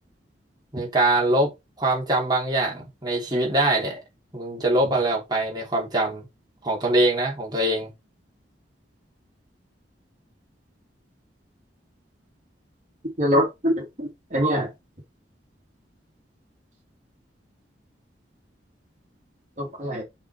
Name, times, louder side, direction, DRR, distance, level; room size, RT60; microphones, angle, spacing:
voice 1, 0.7-4.0 4.3-6.3 6.6-7.9, right 1 dB, 25° right, 3.1 m, -23 dB
voice 2, 13.2-14.7 19.6-20.0, equal, 40° right, 2.9 m, -24 dB
6.1 x 5.5 x 4.4 m
head